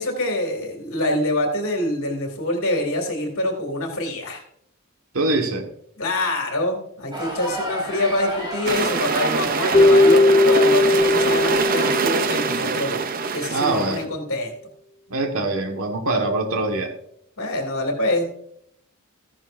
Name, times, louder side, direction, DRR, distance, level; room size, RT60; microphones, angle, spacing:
voice 1, 0.0-4.4 6.0-13.0 13.3-14.5 17.4-18.3, left 1 dB, 70° left, 2 dB, 2.6 m, -25 dB
voice 2, 5.1-5.7 13.5-14.0 15.1-16.9, right 2 dB, 70° right, 4 dB, 1.5 m, -23 dB
sound 1, 7.1-12.2, equal, 20° right, 3.1 m, -33 dB
sound 2, 8.7-14.1, right 5 dB, 40° right, 0.5 m, -24 dB
Keyboard (musical), 9.7-13.0, left 2 dB, 25° left, 0.3 m, -18 dB
14.5 x 10.5 x 2.6 m, 0.69 s
head